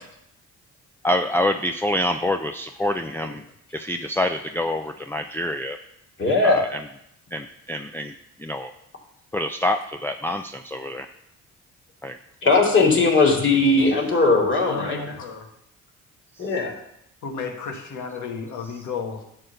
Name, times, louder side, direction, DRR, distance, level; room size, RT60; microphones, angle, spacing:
voice 1, 1.0-3.4 3.7-5.8 6.4-6.8 7.3-8.1 8.4-8.7 9.3-11.1 12.0-12.2 16.4-16.5, left 1 dB, 10° left, 6 dB, 0.4 m, -26 dB
voice 2, 6.2-6.6 12.4-15.0 16.4-16.7, left 3 dB, 40° left, -1 dB, 2.7 m, -19 dB
voice 3, 14.6-15.5 17.2-19.2, left 5 dB, 70° left, 2 dB, 1.7 m, -32 dB
11.0 x 3.9 x 6.8 m, 0.78 s
cardioid pair, 90°, 30 cm